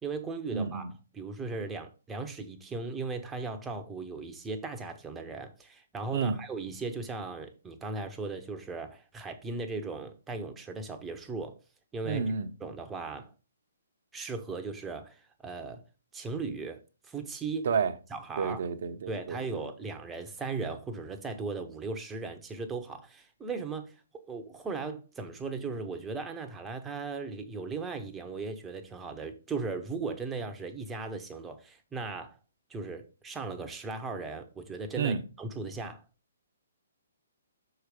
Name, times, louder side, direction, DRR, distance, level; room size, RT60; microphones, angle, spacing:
voice 1, 0.0-11.6 11.9-12.3 12.6-13.3 14.1-15.8 16.1-17.7 18.1-18.7 19.1-32.4 32.7-36.0, right 4 dB, 10° right, 0.9 m, -37 dB
voice 2, 0.5-0.9 6.1-6.4 12.1-12.5 17.6-17.9 18.4-19.4 35.0-35.2, right 6 dB, 50° right, 0.9 m, -30 dB
6.4 x 4.9 x 5.1 m
figure-of-eight pair, 130°, 0 cm